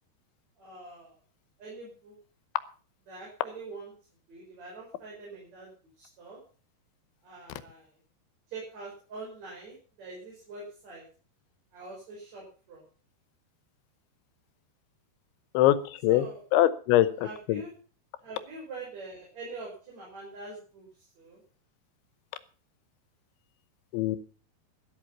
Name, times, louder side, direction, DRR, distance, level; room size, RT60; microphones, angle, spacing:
voice 1, 0.6-1.1 1.6-2.1 3.1-3.9 4.3-5.7 6.0-6.4 7.2-7.8 8.5-11.0 11.7-12.4 12.7-12.8 16.1-16.4 17.2-17.7 18.2-20.9 21.2-21.4, right 3 dB, 40° right, -3 dB, 6.1 m, -44 dB
voice 2, 16.5-17.6 23.9-24.2, left 14 dB, 85° left, 14 dB, 3.3 m, -22 dB
13.0 x 11.5 x 5.8 m, 0.39 s
omnidirectional pair, 5.2 m